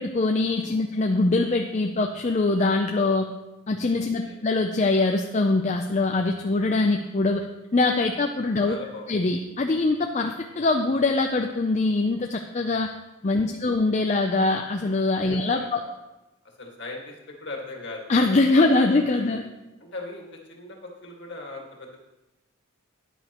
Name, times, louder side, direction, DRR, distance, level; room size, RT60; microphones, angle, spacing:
voice 1, 0.0-3.3 3.7-7.5 7.7-8.8 9.1-12.9 13.2-15.8 18.1-19.4, left 3 dB, 30° left, 4 dB, 0.4 m, -23 dB
voice 2, 4.0-4.4 8.5-9.1 13.4-13.7 15.2-15.9 16.6-19.4 19.8-22.0, left 2 dB, 55° left, 0 dB, 1.9 m, -39 dB
13.0 x 9.9 x 3.0 m, 1.0 s
head